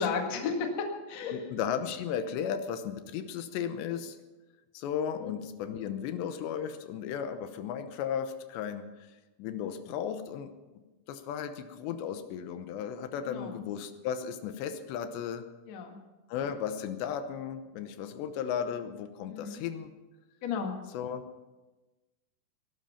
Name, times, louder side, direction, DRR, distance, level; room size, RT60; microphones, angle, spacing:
voice 1, 0.0-1.4 5.2-5.3 13.2-13.6 15.7-16.0 19.3-19.6 20.4-20.8, left 5 dB, 50° left, 3 dB, 2.5 m, -33 dB
voice 2, 1.3-4.2 4.7-8.8 9.4-10.5 11.1-15.5 16.3-19.9 20.9-21.2, left 8 dB, 85° left, 9 dB, 3.2 m, -35 dB
20.0 x 12.0 x 5.8 m, 1.2 s
omnidirectional pair, 4.9 m